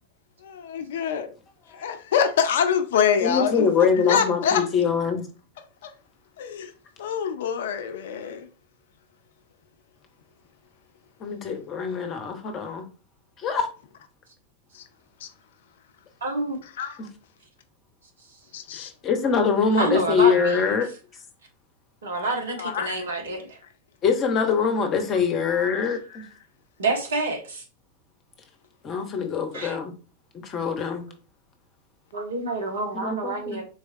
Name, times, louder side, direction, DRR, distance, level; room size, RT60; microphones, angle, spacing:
voice 1, 0.4-1.3 1.7-4.6 5.8-5.9 6.4-6.7 7.0-8.5 14.7-14.8 15.2-15.3 16.8-17.0 18.5-18.9 22.6-23.0, left 7 dB, 60° left, 0.5 m, -25 dB
voice 2, 3.2-5.2 11.2-12.9 13.4-13.7 17.0-17.1 18.7-20.9 24.0-26.2 28.8-29.9 30.4-31.1 32.9-33.6, left 6 dB, 30° left, 0.9 m, -23 dB
voice 3, 16.2-16.6 19.8-20.6 22.0-23.6 26.8-27.6 29.5-29.8 32.1-33.6, right 2 dB, 65° right, 1.1 m, -28 dB
4.0 x 3.3 x 2.6 m
figure-of-eight pair, 90°, 0 cm